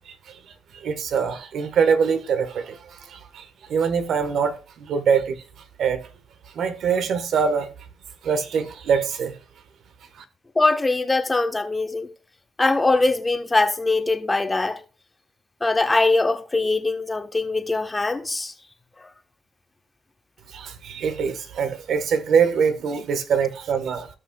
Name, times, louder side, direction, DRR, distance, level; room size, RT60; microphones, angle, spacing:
voice 1, 0.1-0.4 0.7-5.4 5.8-6.1 6.5-7.7 8.2-9.4 10.1-10.2 20.5-24.1, right 6 dB, 70° right, 1.5 m, -24 dB
voice 2, 10.5-12.1 12.6-14.8 15.6-18.5, left 3 dB, 20° left, 1.3 m, -22 dB
17.5 x 6.0 x 2.4 m
cardioid pair, 90°, 0 cm